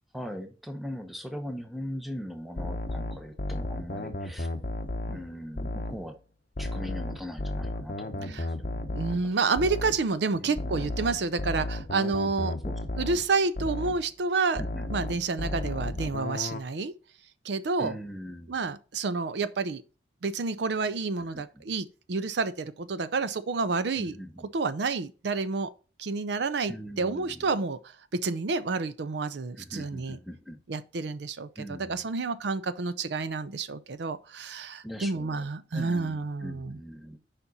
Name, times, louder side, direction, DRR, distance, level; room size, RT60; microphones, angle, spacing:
voice 1, 0.1-4.5 5.1-6.2 6.6-9.0 9.5-9.6 10.3-10.9 12.6-12.8 14.6-14.9 17.8-18.7 21.3-21.7 24.0-24.4 26.7-27.6 29.6-30.6 31.6-32.0 34.8-37.2, equal, ahead, 0.8 m, -40 dB
sound 1, 2.6-6.1 6.6-10.1 10.6-14.1 14.6-16.6, left 2 dB, 45° left, 0.7 m, -34 dB
voice 2, 8.9-12.6 13.0-14.6 14.9-16.9 17.4-18.0 18.5-19.8 20.2-24.1 24.5-25.7 26.0-27.9 28.2-30.2 30.7-36.8, right 4 dB, 70° right, 0.5 m, -29 dB
7.1 x 5.1 x 4.1 m
head